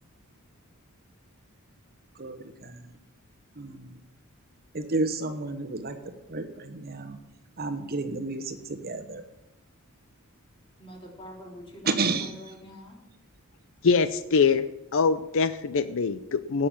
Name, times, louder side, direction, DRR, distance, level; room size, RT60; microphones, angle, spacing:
voice 1, 2.1-3.0 3.5-4.0 4.7-7.2 7.6-9.2 11.8-12.3, right 3 dB, 45° right, 1.1 m, -31 dB
voice 2, 10.8-11.9 12.2-13.0, equal, 25° left, 3.3 m, -45 dB
voice 3, 13.8-16.7, left 5 dB, 60° left, 0.5 m, -24 dB
17.5 x 6.7 x 7.2 m
head